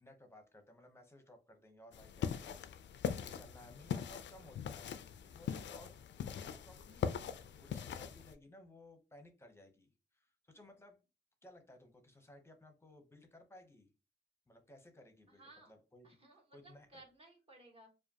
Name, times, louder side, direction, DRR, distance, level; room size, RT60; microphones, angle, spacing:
voice 1, 0.0-5.9 6.2-11.0 11.4-13.9 14.5-16.2 16.5-17.0, left 1 dB, 15° left, 5 dB, 0.8 m, -59 dB
sound 1, 1.9-8.3, left 8 dB, 80° left, 0.4 m, -41 dB
voice 2, 15.3-15.7 16.0-17.9, right 2 dB, 30° right, -1 dB, 1.3 m, -59 dB
4.8 x 2.5 x 2.8 m, 0.29 s
wide cardioid pair, 160°, 18 cm